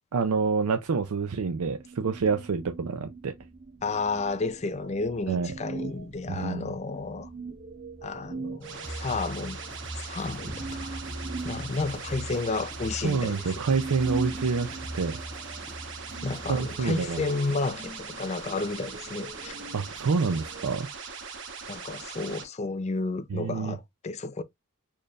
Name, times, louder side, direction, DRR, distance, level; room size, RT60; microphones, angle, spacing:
voice 1, 0.1-3.3 5.3-5.5 6.3-6.7 13.0-15.2 16.5-17.2 19.7-20.9 23.3-23.8, right 5 dB, 90° right, 0.5 m, -27 dB
sound 1, 1.6-20.8, right 3 dB, 40° right, 0.8 m, -41 dB
voice 2, 3.8-7.3 8.0-9.6 9.9-11.0 11.4-13.6 16.2-19.5 21.7-24.4, left 3 dB, 30° left, 0.4 m, -32 dB
sound 2, 8.6-22.4, right 5 dB, 60° right, 1.2 m, -41 dB
sound 3, 8.8-16.9, right 1 dB, 5° left, 1.0 m, -41 dB
4.4 x 3.3 x 2.3 m
head